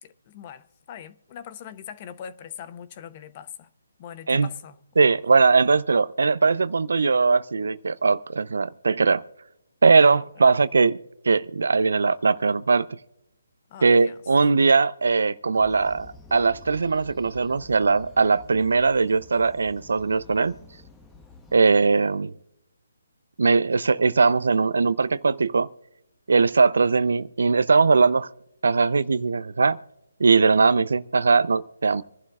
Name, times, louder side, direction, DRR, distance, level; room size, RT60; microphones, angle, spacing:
voice 1, 0.0-3.7 4.0-4.7 5.0-5.1 13.7-14.2, left 9 dB, 30° left, 0.8 m, -41 dB
voice 2, 5.0-9.2 9.8-11.0 11.2-12.9 13.8-20.5 21.5-22.3 23.4-25.7 26.3-28.3 28.6-29.8 30.2-32.0, right 4 dB, 70° right, 0.6 m, -20 dB
sound 1, 15.5-21.6, left 3 dB, 10° left, 1.0 m, -49 dB
26.0 x 11.5 x 2.4 m
figure-of-eight pair, 150°, 0 cm